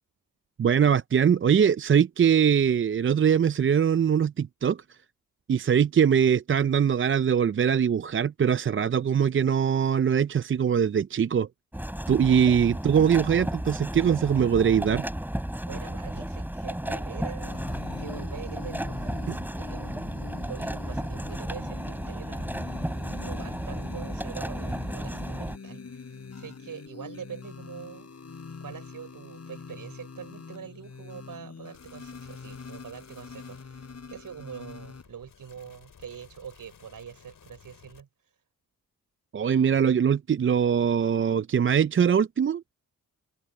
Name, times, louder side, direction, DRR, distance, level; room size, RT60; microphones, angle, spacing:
voice 1, 0.6-4.8 5.5-11.5 12.1-15.0 19.3-19.4 39.3-42.6, right 8 dB, 35° right, 0.5 m, -22 dB
sound 1, 11.7-25.6, right 1 dB, 5° right, 3.5 m, -33 dB
voice 2, 15.6-17.7 18.0-22.5 23.2-28.1 28.6-38.1, right 8 dB, 65° right, 5.9 m, -44 dB
sound 2, 17.4-35.0, left 5 dB, 45° left, 4.0 m, -44 dB
sound 3, 31.7-38.0, left 7 dB, 65° left, 4.8 m, -56 dB
open air
supercardioid pair, 50°, 35 cm